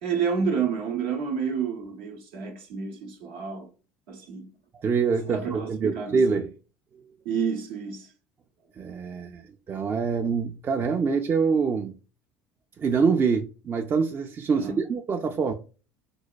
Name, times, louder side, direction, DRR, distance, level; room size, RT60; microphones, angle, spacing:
voice 1, 0.0-3.7 4.1-4.5 5.2-6.4 7.2-8.1 14.6-14.8, right 6 dB, 70° right, 0.6 m, -29 dB
voice 2, 4.8-6.5 8.8-11.9 12.8-15.5, right 5 dB, 30° right, 0.3 m, -25 dB
4.0 x 2.2 x 2.2 m
hypercardioid pair, 65°, 7 cm